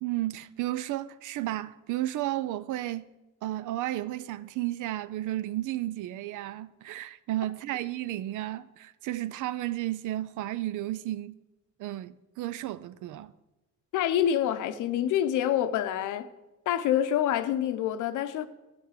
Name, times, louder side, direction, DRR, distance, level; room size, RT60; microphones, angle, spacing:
voice 1, 0.0-3.0 3.4-11.4 11.8-13.3, right 15 dB, 80° right, 0.5 m, -33 dB
voice 2, 13.9-16.3 16.7-18.5, left 10 dB, 85° left, 0.7 m, -26 dB
10.0 x 5.7 x 6.4 m
cardioid pair, 90°, 30 cm